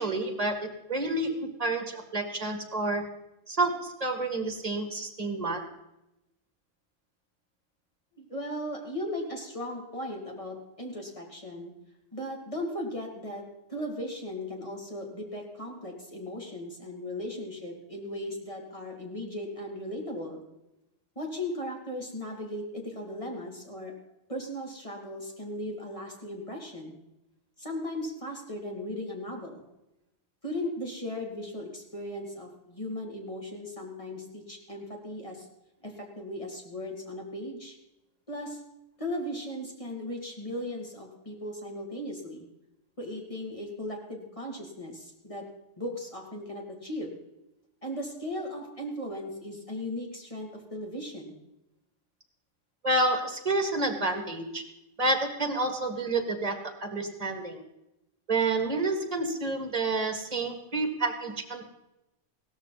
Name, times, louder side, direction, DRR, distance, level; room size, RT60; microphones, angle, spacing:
voice 1, 0.0-3.1 3.5-5.7 52.8-54.6 55.0-57.6 58.3-61.6, right 2 dB, 30° right, 6 dB, 1.9 m, -29 dB
voice 2, 8.1-11.7 12.1-13.4 13.7-20.4 21.2-23.9 24.3-27.0 27.6-29.6 30.4-35.5 35.8-37.8 38.3-38.6 39.0-42.5 43.0-45.4 45.8-47.2 47.8-51.4, left 1 dB, 25° left, 0 dB, 2.7 m, -37 dB
16.5 x 13.5 x 4.1 m, 0.91 s
omnidirectional pair, 1.3 m